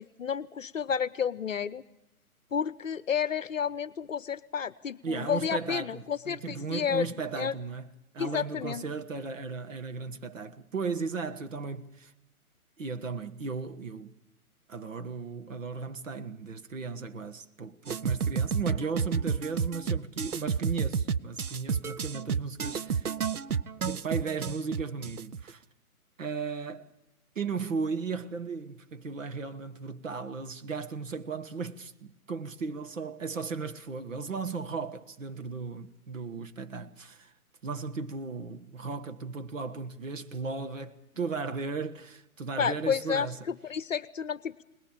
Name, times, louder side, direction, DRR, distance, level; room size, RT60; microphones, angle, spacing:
voice 1, 0.0-1.8 2.5-7.1 7.4-7.5 8.2-8.8 42.6-44.6, left 7 dB, 60° left, 0.8 m, -31 dB
voice 2, 5.0-7.9 8.1-12.1 12.8-14.2 14.7-23.1 23.8-25.6 26.2-26.9 27.3-37.3 37.6-43.4, right 4 dB, 60° right, 1.5 m, -36 dB
sound 1, 17.9-25.5, right 6 dB, 75° right, 0.8 m, -30 dB
21.5 x 20.5 x 7.3 m
figure-of-eight pair, 135°, 44 cm